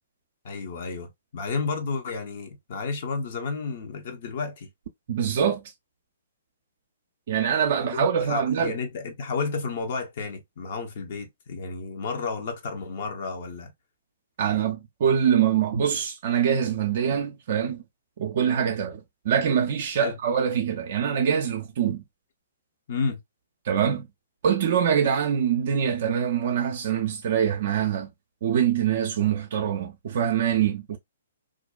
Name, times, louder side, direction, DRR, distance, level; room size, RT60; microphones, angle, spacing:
voice 1, 0.4-4.7 7.9-13.7 20.0-20.1 22.9-23.2, left 4 dB, 50° left, 0.6 m, -31 dB
voice 2, 5.1-5.6 7.3-8.7 14.4-17.8 18.2-22.0 23.6-24.1 24.4-28.1 28.4-31.0, right 8 dB, 55° right, 0.4 m, -24 dB
2.5 x 2.1 x 2.3 m
figure-of-eight pair, 120°, 0 cm